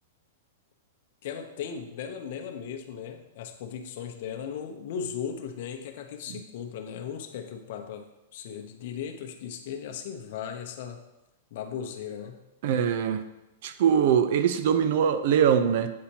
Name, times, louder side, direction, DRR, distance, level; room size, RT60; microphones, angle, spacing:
voice 1, 1.2-8.1 8.3-11.0 11.5-12.4, left 7 dB, 60° left, 4 dB, 0.8 m, -37 dB
voice 2, 12.6-13.2 13.6-15.9, right 8 dB, 60° right, 11 dB, 0.5 m, -22 dB
8.5 x 4.2 x 2.9 m, 0.98 s
hypercardioid pair, 130°, 0 cm